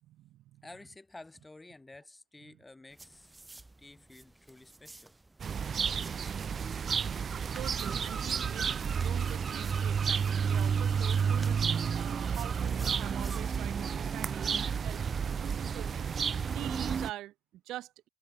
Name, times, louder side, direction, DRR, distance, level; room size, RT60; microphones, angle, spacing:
voice 1, 0.1-0.7 2.5-2.6 7.2-15.0 15.4-18.1, right 15 dB, 55° right, 2.3 m, -45 dB
voice 2, 0.6-3.3 3.8-5.2, left 2 dB, 15° left, 2.4 m, -52 dB
sound 1, 2.9-13.6, right 2 dB, 10° right, 4.7 m, -54 dB
sound 2, 5.4-17.1, right 6 dB, 35° right, 0.5 m, -31 dB
hypercardioid pair, 70°, 0 cm